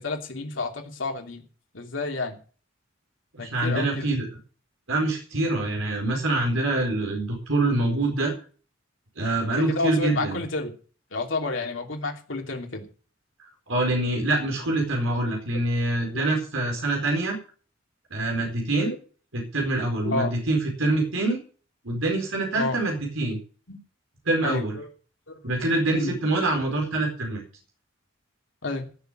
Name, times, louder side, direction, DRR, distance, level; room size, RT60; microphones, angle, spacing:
voice 1, 0.0-1.4 1.7-2.4 3.4-4.1 9.7-10.7 11.1-12.9 18.8-19.0 20.0-20.3 22.6-22.8 23.7-23.8 24.4-24.9 25.3-25.4 25.9-26.2 28.6-28.9, left 2 dB, 65° left, 3 dB, 3.1 m, -30 dB
voice 2, 3.3-4.3 4.9-8.3 9.2-10.4 13.7-17.4 18.1-18.9 19.3-21.4 21.8-23.4 24.3-24.8 25.4-27.4, right 2 dB, 90° right, 1 dB, 4.6 m, -25 dB
16.0 x 7.2 x 6.4 m, 0.39 s
head